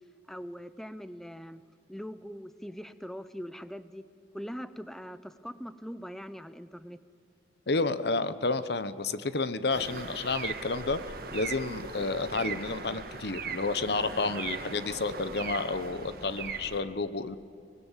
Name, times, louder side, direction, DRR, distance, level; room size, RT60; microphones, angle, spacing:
voice 1, 0.3-1.6 1.9-4.0 4.3-7.0, equal, ahead, 13 dB, 0.6 m, -42 dB
voice 2, 7.7-17.4, left 3 dB, 65° left, 13 dB, 0.9 m, -31 dB
sound 1, 9.7-16.8, right 5 dB, 55° right, 1.6 m, -39 dB
25.5 x 19.5 x 7.3 m, 2.4 s
head